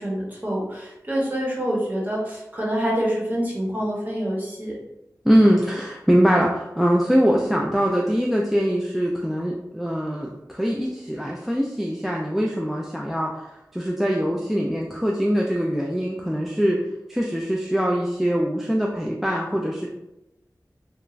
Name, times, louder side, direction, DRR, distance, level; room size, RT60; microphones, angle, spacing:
voice 1, 0.0-4.8, equal, 25° right, -4 dB, 1.0 m, -26 dB
voice 2, 5.2-16.8 17.1-19.9, equal, ahead, -1 dB, 0.3 m, -22 dB
2.4 x 2.2 x 3.0 m, 0.90 s
wide cardioid pair, 55°, 7 cm